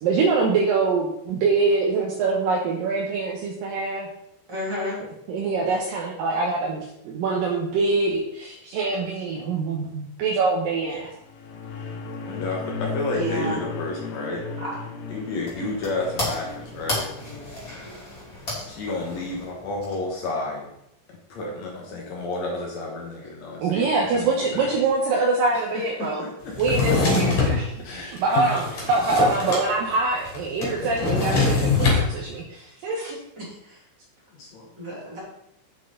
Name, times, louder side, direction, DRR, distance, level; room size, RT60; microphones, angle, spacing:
voice 1, 0.0-4.1 5.3-11.1 23.6-26.2 26.6-27.7 28.0-28.6 28.9-33.2, right 3 dB, 75° right, -2 dB, 2.1 m, -24 dB
voice 2, 4.5-5.0 13.1-13.6 14.6-14.8 33.4-33.8 34.8-35.2, equal, 30° right, -6 dB, 2.8 m, -31 dB
sound 1, 11.1-17.8, left 5 dB, 70° left, 2.6 m, -35 dB
voice 3, 12.3-14.4 15.1-17.1 18.6-20.7 21.3-24.7 25.5-26.6 27.8-28.5 34.3-35.0, left 2 dB, 85° left, -1 dB, 1.5 m, -31 dB
sound 2, 15.0-20.4, left 1 dB, 25° left, 2.6 m, -35 dB
Drawer open or close, 26.5-27.6 28.2-29.7 29.9-30.0 30.2-32.0, left 4 dB, 40° left, 3.9 m, -22 dB
8.8 x 8.2 x 3.9 m, 0.78 s
omnidirectional pair, 5.4 m